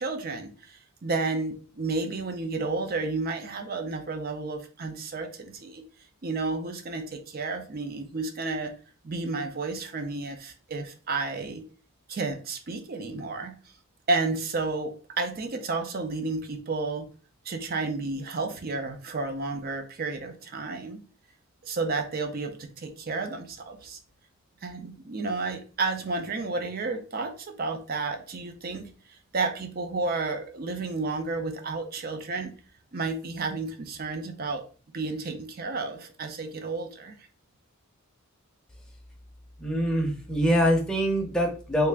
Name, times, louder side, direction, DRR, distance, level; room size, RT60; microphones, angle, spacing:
voice 1, 0.0-5.8 6.2-8.7 9.0-11.6 12.1-13.5 14.1-17.0 17.5-21.0 21.6-24.0 24.6-28.9 29.3-32.5 32.9-34.6 34.9-37.1, right 3 dB, 40° right, 6 dB, 0.5 m, -31 dB
voice 2, 39.6-41.9, equal, 5° left, 1 dB, 0.6 m, -24 dB
3.3 x 2.4 x 3.4 m, 0.38 s
head